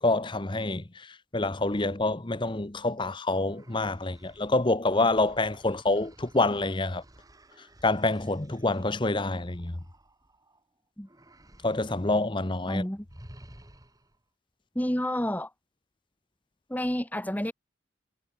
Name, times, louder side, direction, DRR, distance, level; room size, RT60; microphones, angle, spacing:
voice 1, 0.0-7.0 7.8-9.8 11.6-12.8, left 2 dB, 25° left, 1.0 m, -27 dB
sound 1, 3.5-10.6 11.0-12.3 12.6-12.7 13.1-14.2, right 1 dB, 20° right, 3.5 m, -54 dB
voice 2, 12.7-13.1 14.8-15.5 16.7-17.5, equal, 10° left, 1.7 m, -29 dB
head